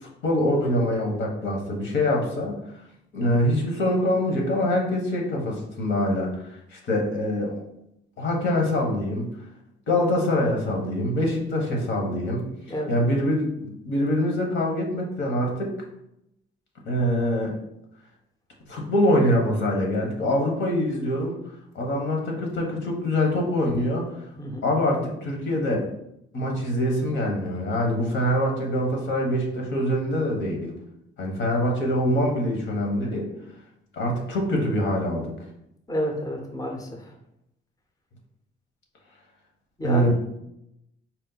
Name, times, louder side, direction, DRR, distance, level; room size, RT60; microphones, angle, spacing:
voice 1, 0.0-2.6 3.1-7.6 8.2-9.3 9.9-12.5 12.9-15.7 16.8-17.6 18.7-21.3 21.7-24.0 24.6-25.9 26.3-30.7 31.2-33.3 34.0-35.3 39.8-40.1, left 1 dB, 70° left, 0 dB, 1.1 m, -24 dB
voice 2, 35.9-36.9 39.8-40.1, equal, 15° left, 1 dB, 0.7 m, -29 dB
4.4 x 2.1 x 3.9 m, 0.80 s
cardioid pair, 90°, 20 cm